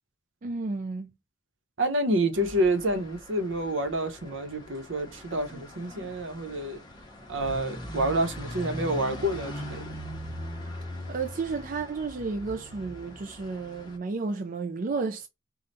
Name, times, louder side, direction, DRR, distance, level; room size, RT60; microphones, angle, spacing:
voice 1, 0.4-1.1 11.1-15.3, right 4 dB, 45° right, 0.4 m, -32 dB
voice 2, 1.8-6.8 7.3-10.0, right 1 dB, 75° right, 0.9 m, -28 dB
sound 1, 2.3-14.0, equal, 20° left, 1.0 m, -41 dB
5.1 x 2.3 x 4.1 m
head